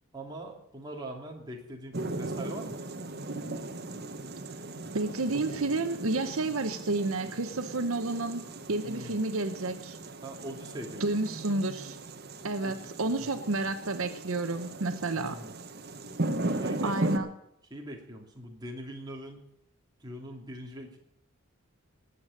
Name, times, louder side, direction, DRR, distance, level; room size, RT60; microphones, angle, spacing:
voice 1, 0.1-2.8 8.8-9.2 10.2-11.2 12.6-12.8 13.2-13.4 15.2-15.6 16.4-17.2 17.7-19.4 20.0-21.0, right 1 dB, 20° right, 0 dB, 2.6 m, -42 dB
sound 1, 1.9-17.2, right 2 dB, 45° right, 1.1 m, -37 dB
voice 2, 4.9-8.4 8.7-10.0 11.0-12.0 12.4-15.4 16.8-17.3, right 2 dB, 70° right, 9 dB, 0.9 m, -30 dB
19.5 x 8.2 x 6.5 m, 0.77 s
head